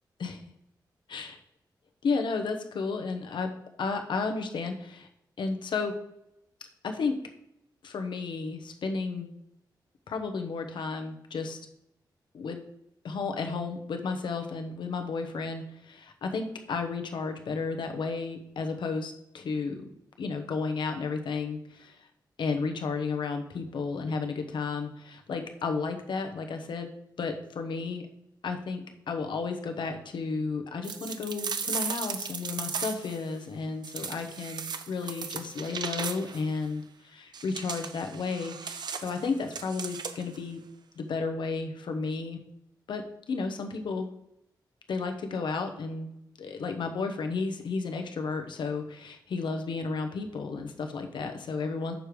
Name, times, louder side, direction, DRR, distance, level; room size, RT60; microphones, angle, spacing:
voice 1, 2.0-3.5 3.8-5.1 5.4-6.0 6.8-7.2 7.8-9.3 10.1-11.6 12.3-12.6 13.0-19.9 20.2-22.1 22.4-26.9 27.2-28.0 28.4-40.6 41.0-42.4 42.9-44.1 44.9-46.1 46.4-51.9, left 4 dB, 80° left, 5 dB, 1.0 m, -33 dB
sound 1, 30.8-33.2 33.8-36.5 37.3-40.4, right 6 dB, 65° right, 0.6 m, -36 dB
6.4 x 4.9 x 5.2 m, 0.81 s
wide cardioid pair, 120°, 8 cm